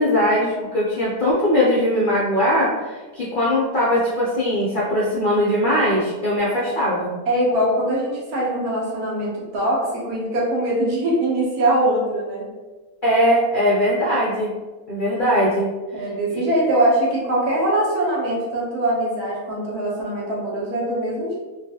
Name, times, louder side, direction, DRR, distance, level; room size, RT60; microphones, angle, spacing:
voice 1, 0.0-7.1 13.0-14.5 14.9-15.7, equal, 60° left, -7 dB, 0.5 m, -20 dB
voice 2, 7.3-12.5 15.9-21.4, right 1 dB, 70° right, -4 dB, 1.2 m, -22 dB
3.1 x 2.3 x 2.7 m, 1.3 s
omnidirectional pair, 1.7 m